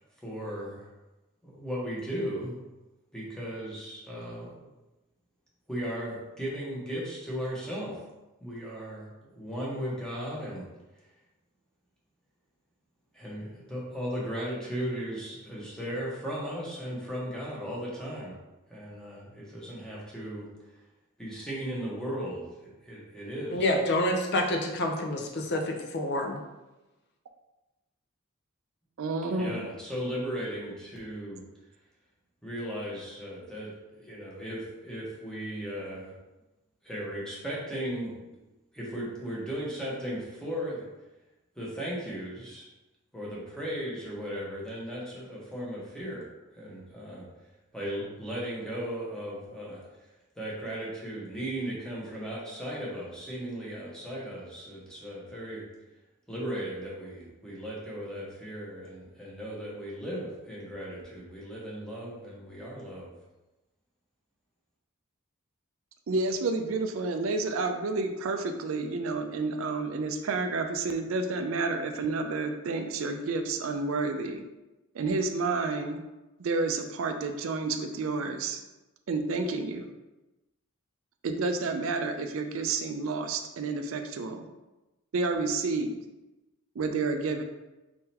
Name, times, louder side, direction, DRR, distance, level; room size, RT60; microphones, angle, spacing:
voice 1, 0.2-0.8 1.4-2.6 3.1-4.5 5.7-7.9 8.4-9.1 9.4-10.7 13.1-18.3 18.7-20.5 21.2-22.5 22.8-23.7 29.4-31.4 32.4-33.7 34.0-36.1 36.8-38.1 38.7-40.8 41.6-42.6 43.1-46.3 46.6-47.3 47.7-49.8 50.4-55.6 56.3-63.1, equal, 5° left, -6 dB, 1.1 m, -36 dB
voice 2, 23.5-26.4, left 1 dB, 50° left, 3 dB, 0.5 m, -28 dB
voice 3, 29.0-29.7 66.1-74.4 74.9-76.0 76.4-78.6 79.1-79.9 81.2-84.5 85.1-86.0 86.8-87.4, right 3 dB, 65° right, 6 dB, 0.4 m, -30 dB
4.3 x 3.8 x 2.8 m, 1.0 s
head